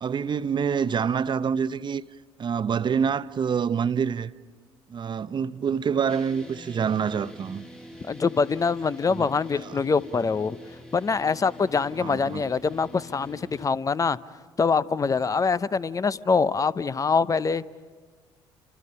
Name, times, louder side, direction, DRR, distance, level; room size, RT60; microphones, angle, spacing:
voice 1, 0.0-2.0 2.4-4.3 4.9-7.6 9.1-9.3 9.6-9.8 12.0-12.4, right 7 dB, 35° right, 0.7 m, -26 dB
sound 1, 6.1-13.7, equal, 5° left, 1.7 m, -45 dB
voice 2, 8.1-10.6 10.9-14.2 14.6-17.6, left 5 dB, 25° left, 0.8 m, -24 dB
29.0 x 25.0 x 5.6 m
hypercardioid pair, 55°, 13 cm